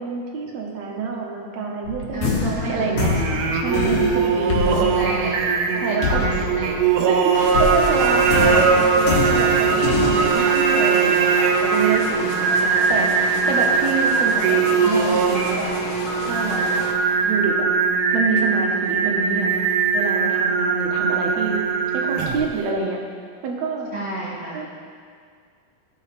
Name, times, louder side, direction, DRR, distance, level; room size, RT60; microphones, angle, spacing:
voice 1, 0.0-3.1 3.6-5.3 5.8-6.3 7.1-11.3 11.6-15.7 16.2-16.8 17.2-17.7 18.1-19.5 19.9-21.6 21.9-23.0 23.4-23.9 24.5-24.7, right 4 dB, 65° right, 0 dB, 2.3 m, -27 dB
sound 1, 1.8-7.2 7.5-10.3, left 4 dB, 70° left, 2.7 m, -25 dB
voice 2, 2.1-2.9 4.8-5.4 5.7-6.8 12.1-12.9 23.9-24.6, right 1 dB, 35° right, -7 dB, 2.4 m, -32 dB
Singing, 3.0-22.6, right 5 dB, 85° right, 2.3 m, -20 dB
sound 2, 7.3-16.9, left 4 dB, 85° left, 2.6 m, -32 dB
15.5 x 7.0 x 3.3 m, 2.1 s
omnidirectional pair, 3.7 m